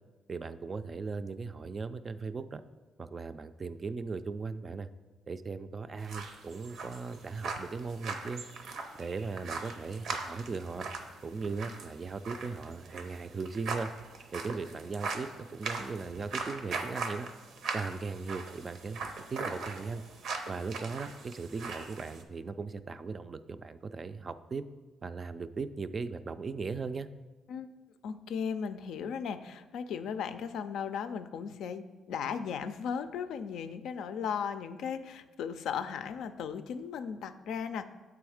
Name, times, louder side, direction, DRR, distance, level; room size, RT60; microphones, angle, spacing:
voice 1, 0.3-2.6 3.0-4.9 5.3-8.4 8.9-10.9 11.2-13.9 14.3-17.3 17.7-20.0 20.5-24.6 25.0-27.1, right 4 dB, 35° right, 12 dB, 0.3 m, -38 dB
sound 1, 6.0-22.2, right 4 dB, 75° right, 0.7 m, -40 dB
voice 2, 28.0-37.9, left 7 dB, 80° left, 10 dB, 0.4 m, -36 dB
7.8 x 3.5 x 4.8 m, 1.2 s
cardioid pair, 90°, 0 cm